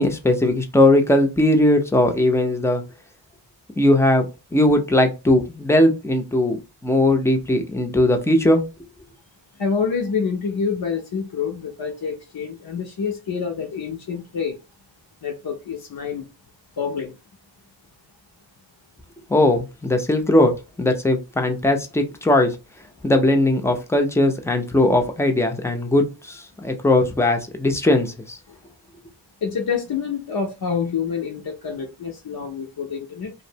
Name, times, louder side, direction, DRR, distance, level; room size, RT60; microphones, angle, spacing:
voice 1, 0.0-2.8 3.8-4.3 4.5-6.6 6.8-8.6 19.3-22.5 23.0-28.4, left 1 dB, 5° left, 0.4 m, -19 dB
voice 2, 9.6-14.6 15.2-16.3 16.8-17.1 28.5-28.6 29.4-33.3, left 6 dB, 55° left, 0.6 m, -27 dB
2.6 x 2.0 x 2.7 m
wide cardioid pair, 70°, 46 cm